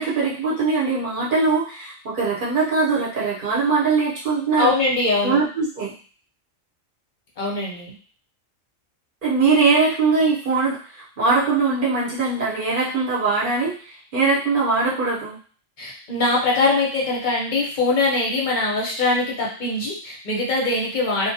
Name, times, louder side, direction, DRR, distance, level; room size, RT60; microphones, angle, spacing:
voice 1, 0.0-4.7 5.2-5.9 9.2-13.8 14.1-15.4, right 4 dB, 45° right, -6 dB, 0.9 m, -21 dB
voice 2, 4.6-5.4 7.4-8.0 15.8-21.3, left 3 dB, 45° left, -4 dB, 0.7 m, -22 dB
2.2 x 2.2 x 2.6 m, 0.41 s
omnidirectional pair, 1.3 m